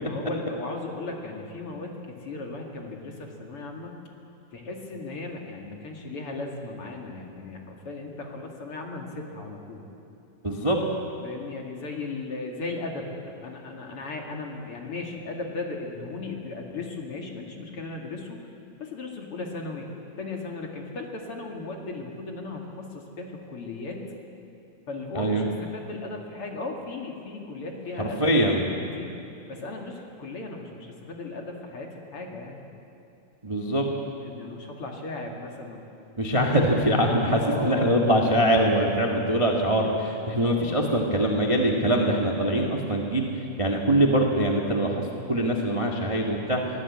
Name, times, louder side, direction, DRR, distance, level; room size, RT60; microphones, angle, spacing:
voice 1, 0.0-3.9 4.5-9.9 11.2-18.4 18.8-19.9 20.2-24.0 24.9-29.1 29.5-32.6 34.2-35.8 37.4-37.9, left 3 dB, 45° left, 1 dB, 2.6 m, -36 dB
voice 2, 10.4-10.8 25.1-25.5 28.0-28.6 33.4-33.9 36.2-43.3 43.6-45.0 45.3-46.6, right 1 dB, 25° right, 0 dB, 0.7 m, -23 dB
23.0 x 17.0 x 8.6 m, 2.7 s
omnidirectional pair, 4.1 m